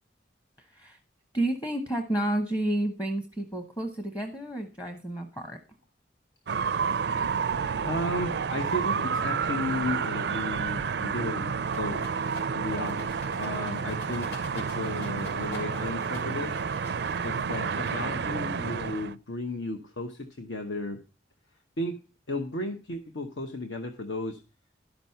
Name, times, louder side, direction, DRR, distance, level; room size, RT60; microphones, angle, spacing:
voice 1, 0.6-1.0 1.3-5.6, right 1 dB, 20° left, 5 dB, 0.9 m, -30 dB
sound 1, 6.5-19.1, right 6 dB, 60° right, 0.4 m, -30 dB
voice 2, 7.6-12.1 12.5-16.5 17.2-21.0 21.8-22.0 22.3-24.4, left 1 dB, 75° left, 5 dB, 0.9 m, -34 dB
Rattle, 11.6-18.3, left 1 dB, 55° left, 3.3 m, -46 dB
11.5 x 6.1 x 5.5 m, 0.33 s
head